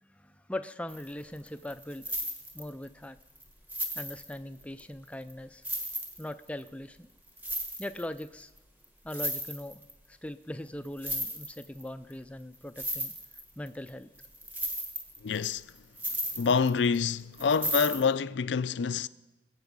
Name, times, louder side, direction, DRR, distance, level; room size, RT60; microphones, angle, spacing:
voice 1, 0.0-2.0 2.5-3.2 4.0-5.6 6.2-7.1 7.8-8.5 9.0-9.8 10.1-13.1 13.6-14.1, left 1 dB, 5° left, 0.4 m, -40 dB
sound 1, 0.9-1.1 1.4-2.9 3.4-3.5 3.7-4.8 5.3-5.4 5.6-6.7 7.3-8.2 8.6-8.7 8.8-9.9 10.8-11.8 12.1-12.2 12.5-13.9 14.2-17.0 17.3-18.0, equal, 10° right, 1.3 m, -35 dB
voice 2, 15.2-15.6 16.4-19.1, left 5 dB, 80° left, 0.4 m, -27 dB
22.0 x 8.1 x 5.4 m
head